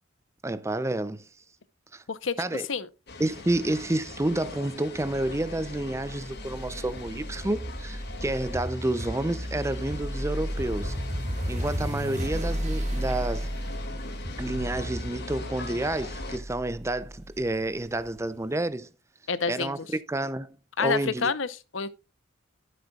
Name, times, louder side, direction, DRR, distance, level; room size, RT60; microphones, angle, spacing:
voice 1, 0.4-1.3 1.9-2.0 2.4-2.7 3.2-11.0 11.5-13.5 14.4-18.9 19.5-21.3, right 1 dB, 15° right, 0.5 m, -29 dB
sound 1, 3.1-16.4, left 2 dB, 55° left, 2.4 m, -41 dB
sound 2, 4.9-18.1, equal, 35° right, 2.0 m, -34 dB
voice 2, 19.3-19.9 20.8-21.9, left 5 dB, 70° left, 0.9 m, -28 dB
12.5 x 7.6 x 2.4 m
head